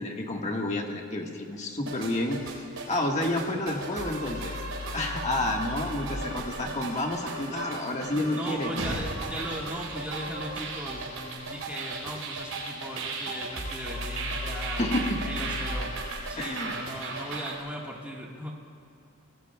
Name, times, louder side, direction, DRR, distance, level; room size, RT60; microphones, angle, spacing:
voice 1, 0.0-2.4 2.9-4.6 4.9-8.9 14.7-15.2 16.4-16.8, left 1 dB, 30° left, 1 dB, 1.5 m, -30 dB
sound 1, 1.9-17.6, right 2 dB, 70° right, 4.1 m, -35 dB
voice 2, 8.1-14.9 15.2-15.9 16.3-18.5, right 1 dB, 5° right, -3 dB, 1.5 m, -38 dB
26.0 x 19.5 x 2.3 m, 2.6 s
head